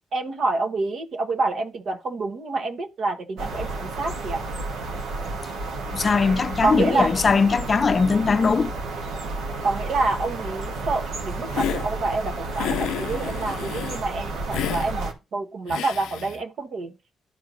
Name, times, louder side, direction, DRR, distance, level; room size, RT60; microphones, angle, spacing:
voice 1, 0.1-4.4 6.6-7.1 9.6-16.9, right 3 dB, 60° right, 1.2 m, -27 dB
sound 1, 3.4-15.1, right 2 dB, 85° right, 1.3 m, -31 dB
voice 2, 5.9-8.7, left 5 dB, 35° left, 0.5 m, -20 dB
Hiss, 11.5-11.9 12.5-14.0 14.5-14.9 15.7-16.4, left 11 dB, 90° left, 0.4 m, -30 dB
12.0 x 4.5 x 2.6 m
cardioid pair, 90°, 0 cm